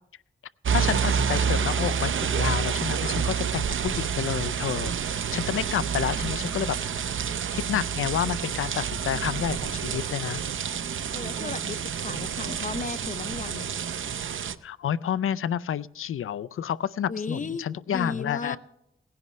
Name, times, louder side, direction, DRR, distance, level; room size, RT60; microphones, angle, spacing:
sound 1, 0.6-14.6, right 7 dB, 70° right, 0.6 m, -28 dB
voice 1, 0.7-6.8 7.5-10.4 14.6-18.6, left 9 dB, 80° left, 17 dB, 0.4 m, -29 dB
Bowed string instrument, 4.3-8.5, right 1 dB, 40° right, 5.7 m, -49 dB
voice 2, 11.1-13.7 17.1-18.6, left 4 dB, 40° left, 12 dB, 0.6 m, -35 dB
18.0 x 10.5 x 3.2 m, 0.84 s
wide cardioid pair, 90°, 21 cm